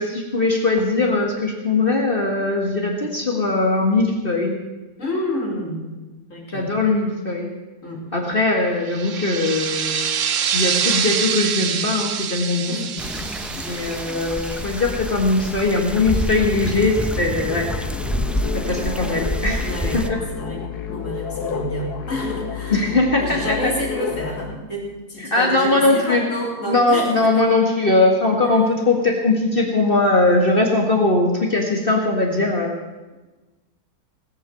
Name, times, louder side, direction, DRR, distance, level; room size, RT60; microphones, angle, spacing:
voice 1, 0.0-4.6 6.5-7.5 8.1-10.0 10.5-12.8 13.5-17.7 18.7-19.7 19.9-20.2 22.7-23.6 25.3-26.2 26.7-32.7, left 2 dB, 35° left, 0 dB, 1.9 m, -20 dB
voice 2, 5.0-5.9 6.3-6.8 7.8-8.0 12.7-13.3 13.7-14.2 19.6-20.0 20.4-27.4, equal, 55° left, -2 dB, 3.9 m, -29 dB
sound 1, 8.9-15.2, right 8 dB, 60° right, 1.1 m, -25 dB
sound 2, 13.0-20.1, equal, ahead, 0.3 m, -28 dB
sound 3, 17.5-24.6, left 7 dB, 90° left, 1.5 m, -30 dB
18.5 x 8.7 x 7.7 m, 1.2 s
omnidirectional pair, 1.6 m